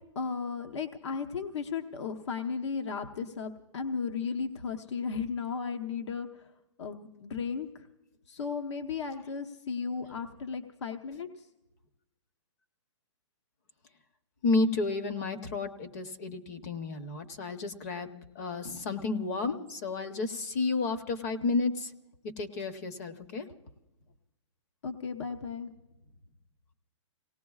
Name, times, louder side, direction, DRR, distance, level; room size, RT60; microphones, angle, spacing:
voice 1, 0.1-6.3 6.8-7.9 8.3-11.3 24.8-25.7, left 5 dB, 65° left, 5 dB, 1.0 m, -35 dB
voice 2, 14.4-21.9 22.4-23.5, left 3 dB, 30° left, 8 dB, 0.8 m, -31 dB
27.5 x 18.0 x 2.4 m, 0.99 s
hypercardioid pair, 170°, 16 cm